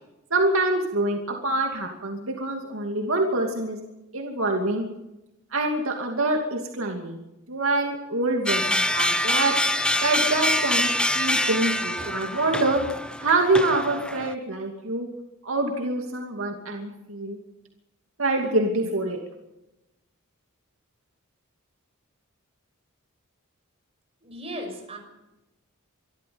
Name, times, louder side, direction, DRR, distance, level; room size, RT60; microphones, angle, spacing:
voice 1, 0.3-3.8 4.1-4.8 5.5-7.2 7.5-9.6 10.0-12.8 13.2-15.1 15.4-17.4 18.2-19.2, right 2 dB, 65° right, 2 dB, 2.6 m, -25 dB
sound 1, 8.5-14.3, left 1 dB, 5° left, 0.8 m, -25 dB
voice 2, 24.2-25.0, equal, 30° right, 3 dB, 5.9 m, -36 dB
25.5 x 13.0 x 7.9 m, 0.97 s
head